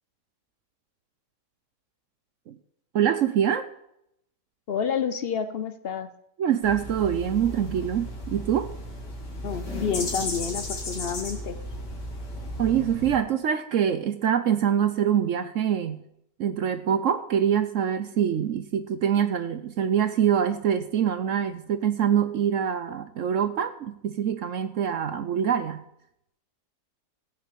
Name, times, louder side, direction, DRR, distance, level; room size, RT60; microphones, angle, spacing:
voice 1, 2.9-3.7 6.4-8.7 12.6-16.0 16.4-25.8, right 9 dB, 65° right, 12 dB, 0.8 m, -25 dB
voice 2, 4.7-6.1 9.2-11.6, left 6 dB, 60° left, 12 dB, 0.6 m, -29 dB
sound 1, 6.6-13.2, left 1 dB, 80° left, 3.1 m, -35 dB
15.0 x 6.2 x 8.4 m, 0.78 s
omnidirectional pair, 1.8 m